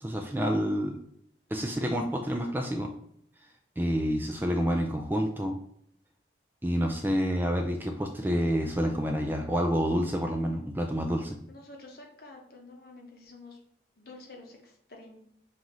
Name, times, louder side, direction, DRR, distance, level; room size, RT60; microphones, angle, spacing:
voice 1, 0.0-1.0 1.5-2.9 3.8-5.6 6.6-11.4, equal, 10° right, 3 dB, 0.3 m, -28 dB
voice 2, 11.5-13.6 14.0-15.2, left 2 dB, 55° left, 1 dB, 0.9 m, -49 dB
5.4 x 2.5 x 3.0 m, 0.70 s
head